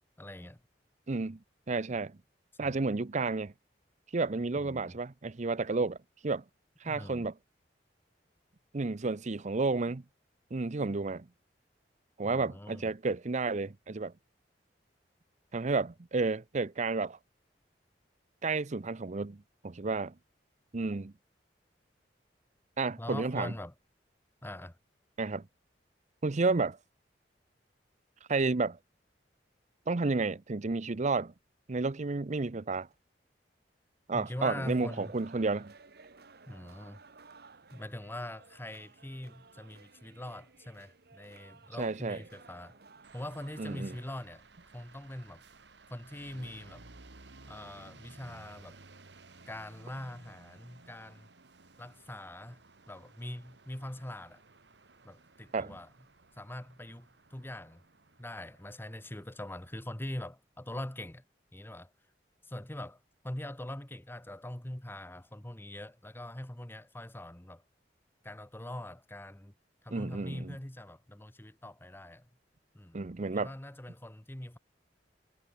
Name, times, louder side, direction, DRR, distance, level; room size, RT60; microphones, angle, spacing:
voice 1, 0.2-0.6 2.6-2.8 4.6-5.0 6.8-7.3 12.2-12.9 23.0-23.7 24.4-24.8 34.1-35.1 36.5-37.0 37.7-42.8 43.1-44.4 44.7-45.4 45.9-46.8 47.5-48.8 49.5-51.3 51.8-54.4 55.0-55.9 56.4-57.8 58.2-61.2 61.5-61.9 62.5-67.6 68.2-69.5 69.8-72.3 72.7-74.6, left 1 dB, 15° left, 1.1 m, -43 dB
voice 2, 1.1-1.4 1.7-2.2 2.6-3.5 4.1-6.0 6.2-6.4 6.8-7.3 8.7-10.0 10.5-11.3 12.2-14.1 15.5-17.2 18.4-19.4 19.6-20.1 20.7-21.1 22.8-23.5 25.2-25.4 26.2-26.8 28.3-28.8 29.9-31.3 31.7-32.9 34.1-35.7 41.8-42.2 43.6-44.0 55.5-55.7 69.9-70.6 72.9-73.5, right 3 dB, 45° right, 0.7 m, -31 dB
hindu prayers singing ritual songs in the temple (Pūjā), 34.3-44.0, right 4 dB, 65° right, 1.5 m, -56 dB
sound 1, 43.0-60.0, right 3 dB, 80° right, 2.1 m, -57 dB
head